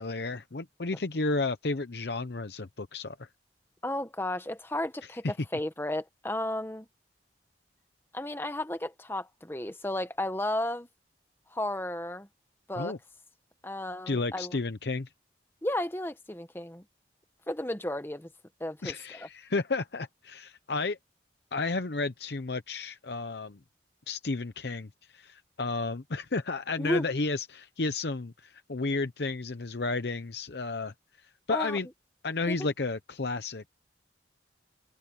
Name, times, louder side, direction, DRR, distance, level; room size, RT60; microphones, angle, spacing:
voice 1, 0.0-3.3 5.2-5.3 12.8-13.0 14.1-15.1 18.8-21.0 21.5-23.6 24.1-30.9 31.2-31.9 32.2-33.7, left 3 dB, 65° left, 0.8 m, -32 dB
voice 2, 3.8-6.9 8.1-10.9 11.5-12.3 12.7-13.0 13.6-14.6 15.6-16.8 17.5-18.3 18.6-18.9 26.8-27.1 31.5-31.8 32.5-32.7, left 1 dB, 10° left, 1.1 m, -33 dB
head